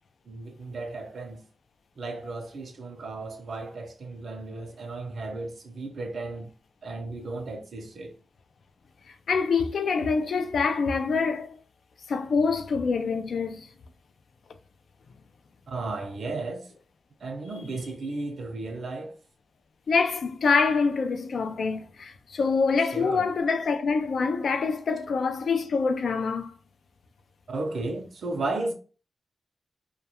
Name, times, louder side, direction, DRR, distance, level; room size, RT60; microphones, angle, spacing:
voice 1, 0.3-1.4 2.0-6.5 6.8-8.1 15.7-16.7 17.2-19.1 22.9-23.3 27.5-28.7, right 2 dB, 70° right, 0.5 m, -34 dB
voice 2, 9.1-11.6 12.1-13.7 19.9-26.5, left 4 dB, 75° left, 0.3 m, -25 dB
2.2 x 2.2 x 2.8 m
wide cardioid pair, 140°, 0 cm